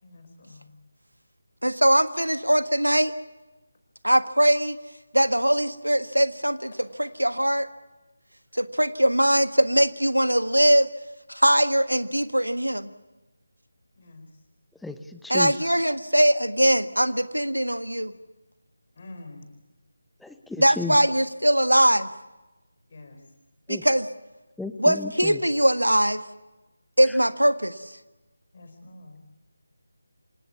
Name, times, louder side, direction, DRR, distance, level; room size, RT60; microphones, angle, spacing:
voice 1, 0.0-0.7 14.0-14.3 19.0-19.4 22.9-23.2 28.5-29.2, left 2 dB, 40° left, 6 dB, 4.5 m, -46 dB
voice 2, 1.6-3.1 4.0-4.8 5.1-7.7 8.5-10.9 11.3-12.9 15.3-18.1 20.6-22.1 23.7-24.1 24.8-26.2 27.0-27.7, equal, 85° right, 12 dB, 1.6 m, -21 dB
voice 3, 14.8-15.8 20.2-21.0 23.7-23.8 24.6-25.4, left 3 dB, ahead, 9 dB, 0.9 m, -35 dB
26.5 x 18.0 x 8.4 m, 1.1 s
figure-of-eight pair, 160°, 0 cm